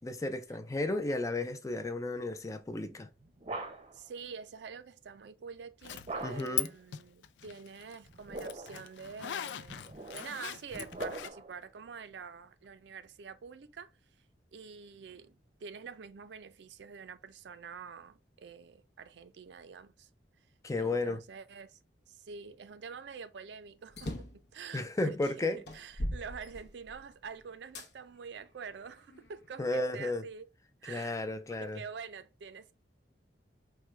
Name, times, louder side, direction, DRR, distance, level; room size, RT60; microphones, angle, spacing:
voice 1, 0.0-3.1 6.2-6.7 20.6-21.2 24.7-25.6 29.6-30.2 30.9-31.8, left 2 dB, 20° left, 0.4 m, -33 dB
sound 1, 2.9-4.1 6.1-6.7 8.0-8.9 9.6-11.6, right 2 dB, 35° right, 0.7 m, -42 dB
voice 2, 3.9-13.9 14.5-20.1 20.8-21.8 22.1-30.5 30.8-31.3 31.6-32.7, right 6 dB, 70° right, 0.4 m, -47 dB
Zipper (clothing), 5.8-6.7 6.9-11.3, left 12 dB, 85° left, 0.4 m, -39 dB
sound 2, 24.0-24.5 25.1-25.2 25.7-27.1 27.7-27.9 28.6-29.7, equal, 65° left, 0.8 m, -39 dB
4.6 x 2.2 x 3.1 m
head